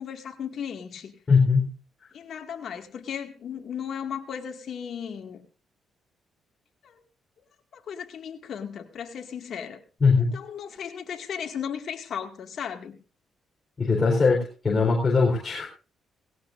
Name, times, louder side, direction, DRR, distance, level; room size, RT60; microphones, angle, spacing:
voice 1, 0.0-1.1 2.1-5.4 6.8-7.0 7.7-9.8 10.3-13.0, left 8 dB, 60° left, 3 dB, 2.2 m, -36 dB
voice 2, 1.3-1.7 10.0-10.4 13.8-15.7, left 4 dB, 30° left, -3 dB, 4.2 m, -21 dB
18.0 x 17.0 x 2.6 m, 0.34 s
cardioid pair, 90°, 0 cm